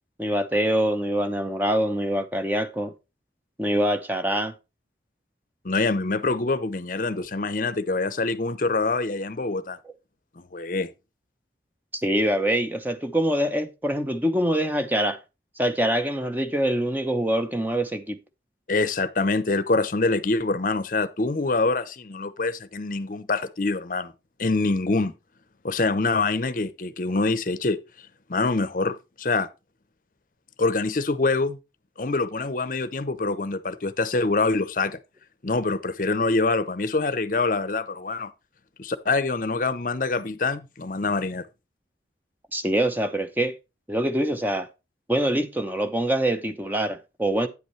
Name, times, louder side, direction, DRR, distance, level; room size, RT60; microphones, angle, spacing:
voice 1, 0.2-2.9 3.6-4.5 12.0-15.2 15.6-18.2 42.5-43.6 43.9-44.7 45.1-47.5, right 1 dB, 10° right, 0.8 m, -24 dB
voice 2, 5.6-9.8 10.4-10.9 18.7-24.1 24.4-25.1 25.6-27.8 28.3-29.5 30.6-31.6 32.0-35.0 35.4-38.3 38.8-41.5, left 3 dB, 45° left, 0.7 m, -25 dB
9.4 x 8.1 x 3.2 m
head